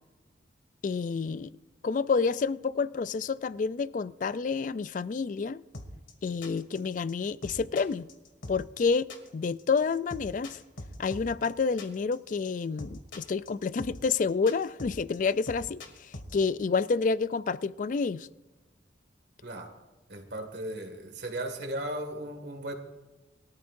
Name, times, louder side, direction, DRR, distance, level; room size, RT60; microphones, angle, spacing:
voice 1, 0.8-1.5 1.8-5.6 6.2-8.1 8.5-10.6 11.0-15.8 16.3-18.3, left 5 dB, 45° left, 0.3 m, -29 dB
sound 1, 5.7-16.3, left 1 dB, 85° left, 2.1 m, -42 dB
voice 2, 19.4-19.7 20.1-22.7, right 1 dB, 65° right, 2.0 m, -36 dB
22.5 x 13.5 x 2.6 m
head